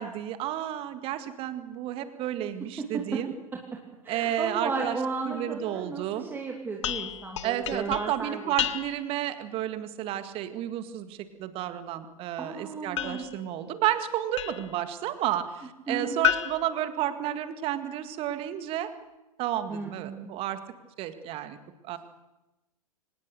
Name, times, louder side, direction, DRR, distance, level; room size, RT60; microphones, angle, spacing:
voice 1, 0.0-3.3 4.1-5.0 5.3-6.3 7.4-18.9 19.4-20.6 21.0-21.6 21.8-22.0, right 12 dB, 30° right, 10 dB, 2.0 m, -31 dB
voice 2, 2.8-3.2 3.5-3.6 4.0-8.5 12.4-13.2 15.9-16.2 19.7-20.3, right 4 dB, 10° right, 1 dB, 2.6 m, -34 dB
sound 1, 6.8-9.2 13.0-14.8 16.2-17.7, left 11 dB, 55° left, 1.2 m, -33 dB
24.5 x 19.5 x 6.8 m, 0.99 s
figure-of-eight pair, 100°, 19 cm